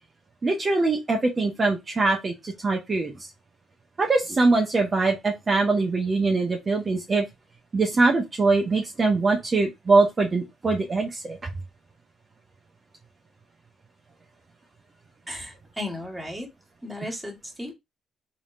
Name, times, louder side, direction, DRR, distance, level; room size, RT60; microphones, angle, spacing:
voice 1, 0.4-3.1 4.0-7.2 7.7-11.4, right 3 dB, 35° right, 1 dB, 1.0 m, -22 dB
voice 2, 15.3-16.5 16.8-17.7, left 1 dB, 5° right, 1 dB, 1.9 m, -35 dB
4.0 x 3.5 x 2.5 m, 0.20 s
cardioid pair, 90°, 0 cm